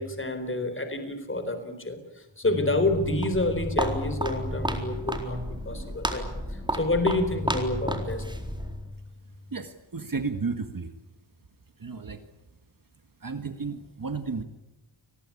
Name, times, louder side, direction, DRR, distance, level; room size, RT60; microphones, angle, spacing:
voice 1, 0.0-8.2, left 2 dB, 25° left, 9 dB, 4.1 m, -28 dB
Walk footsteps, 2.9-8.9, right 1 dB, 10° right, 4.1 m, -32 dB
voice 2, 9.5-10.9 11.8-12.2 13.2-14.4, right 4 dB, 45° right, 7 dB, 1.8 m, -33 dB
29.0 x 20.5 x 8.5 m, 1.0 s
wide cardioid pair, 125°, 47 cm